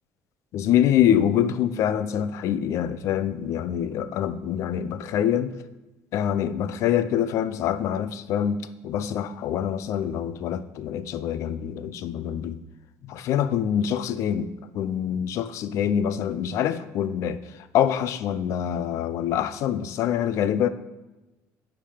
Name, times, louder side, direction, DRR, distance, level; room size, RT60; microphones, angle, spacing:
voice 1, 0.5-5.6 6.1-12.6 13.0-20.7, left 9 dB, 55° left, 14 dB, 0.4 m, -25 dB
10.0 x 3.6 x 5.0 m, 1.1 s
cardioid pair, 165°, 6 cm